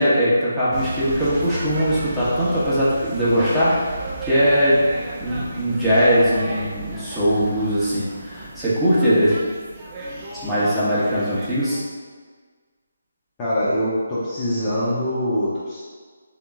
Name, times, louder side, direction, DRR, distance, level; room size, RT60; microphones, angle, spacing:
voice 1, 0.0-3.7 4.2-4.8 5.2-9.3 10.4-11.8, equal, 5° right, -14 dB, 1.1 m, -20 dB
sound 1, 0.7-11.8, right 2 dB, 25° right, 0.6 m, -34 dB
voice 2, 13.4-15.8, equal, 20° left, -10 dB, 0.9 m, -23 dB
3.5 x 3.0 x 3.6 m, 1.5 s
figure-of-eight pair, 155°, 0 cm